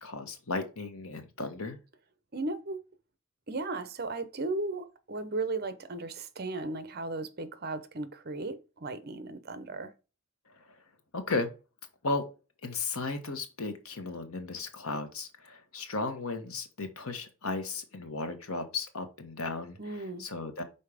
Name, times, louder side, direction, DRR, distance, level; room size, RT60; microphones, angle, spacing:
voice 1, 0.0-1.8 10.6-10.7 11.1-11.5 12.0-12.2 12.6-19.8 20.2-20.6, left 3 dB, 85° left, 1.3 m, -35 dB
voice 2, 2.3-2.8 3.5-9.9 19.8-20.3, right 2 dB, 45° right, 0.8 m, -36 dB
5.6 x 4.2 x 4.9 m
head